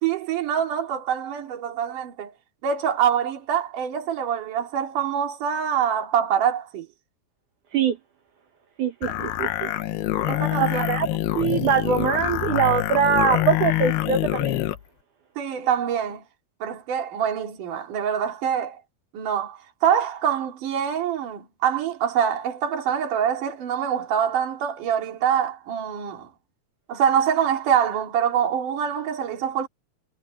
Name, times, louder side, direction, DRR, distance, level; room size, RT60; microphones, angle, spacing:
voice 1, 0.0-2.3 2.6-6.9 9.0-9.2 10.3-10.8 15.4-16.2 16.6-18.8 19.1-26.3 26.9-29.7, right 8 dB, 50° right, 4.4 m, -25 dB
voice 2, 8.8-9.7 10.6-11.1 11.3-14.6, right 7 dB, 65° right, 2.1 m, -23 dB
sound 1, 9.0-14.8, left 14 dB, 75° left, 2.8 m, -25 dB
omnidirectional pair, 5.1 m